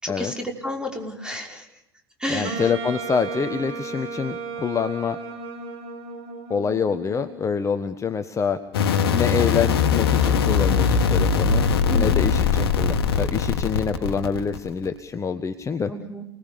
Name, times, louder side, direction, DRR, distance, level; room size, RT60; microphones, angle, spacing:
voice 1, 0.0-1.7 2.2-2.7 11.9-12.3 15.9-16.2, left 1 dB, 5° right, 2 dB, 5.7 m, -31 dB
voice 2, 2.3-5.2 6.5-8.6 9.1-15.9, left 6 dB, 25° left, 10 dB, 1.3 m, -26 dB
Wind instrument woodwind instrument, 2.4-7.4, right 4 dB, 45° right, 6.3 m, -34 dB
sound 1, 8.7-14.9, left 6 dB, 70° left, 1.7 m, -21 dB
29.5 x 20.0 x 6.9 m, 0.85 s
figure-of-eight pair, 75°, 13 cm